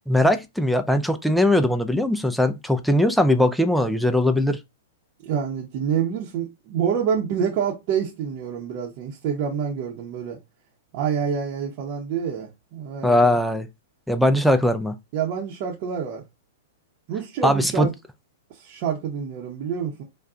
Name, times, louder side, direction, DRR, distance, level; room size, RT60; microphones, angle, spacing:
voice 1, 0.1-4.6 13.0-13.7 14.1-14.9 17.4-17.9, left 1 dB, ahead, 0.4 m, -20 dB
voice 2, 5.2-10.4 10.9-13.4 15.1-16.2 17.1-17.9 18.5-20.0, right 7 dB, 45° right, 0.8 m, -27 dB
2.4 x 2.2 x 3.7 m
hypercardioid pair, 115°, 0 cm